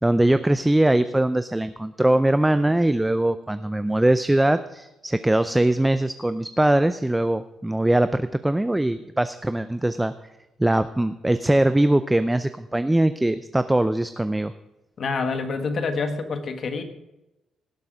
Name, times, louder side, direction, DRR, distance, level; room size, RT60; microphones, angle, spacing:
voice 1, 0.0-10.1 10.6-14.5, right 1 dB, 10° right, 12 dB, 0.5 m, -21 dB
voice 2, 15.0-16.8, left 4 dB, 50° left, 8 dB, 1.4 m, -27 dB
17.0 x 7.7 x 5.0 m, 0.96 s
cardioid pair, 90°, 0 cm